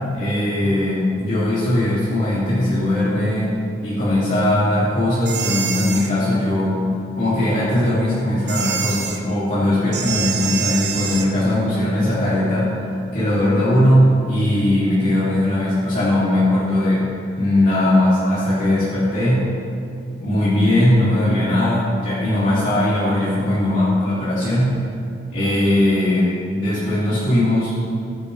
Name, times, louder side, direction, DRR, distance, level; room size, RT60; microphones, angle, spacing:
voice 1, 0.1-3.5 3.8-6.8 7.1-17.1 17.4-19.4 20.2-24.8 25.3-27.7, left 1 dB, 45° left, -11 dB, 2.9 m, -19 dB
sound 1, 5.3-6.1 8.5-9.2 9.9-11.3, right 7 dB, 65° right, 1.0 m, -26 dB
15.0 x 10.0 x 3.4 m, 2.5 s
head